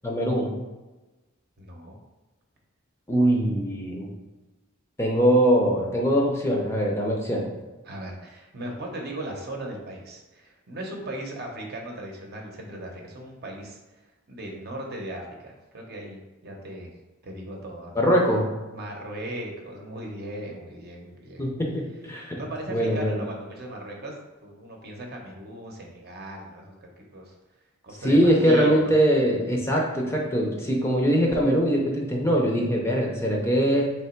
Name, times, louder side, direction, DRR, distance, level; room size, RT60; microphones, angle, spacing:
voice 1, 0.0-0.5 3.1-4.1 5.0-7.5 17.9-18.5 21.4-22.4 22.7-23.2 28.0-33.9, equal, 15° left, -1 dB, 0.6 m, -22 dB
voice 2, 1.6-2.0 7.8-13.8 14.3-16.9 17.2-18.0 18.7-21.4 22.3-27.3 27.8-28.9, right 1 dB, 50° right, 0 dB, 0.8 m, -37 dB
3.4 x 3.0 x 4.4 m, 1.1 s
head